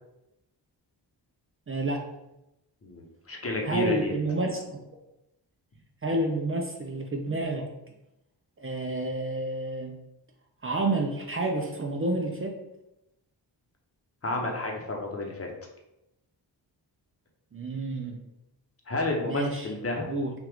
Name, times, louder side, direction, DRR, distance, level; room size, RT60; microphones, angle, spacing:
voice 1, 1.7-2.0 3.6-4.8 6.0-7.7 8.6-10.0 10.6-12.5 17.5-18.2 19.3-19.7 20.1-20.3, right 2 dB, 30° right, 2 dB, 0.5 m, -29 dB
voice 2, 2.8-4.2 14.2-15.5 18.9-20.1, left 2 dB, 35° left, 0 dB, 0.9 m, -31 dB
5.9 x 2.5 x 3.5 m, 0.90 s
wide cardioid pair, 110°, 42 cm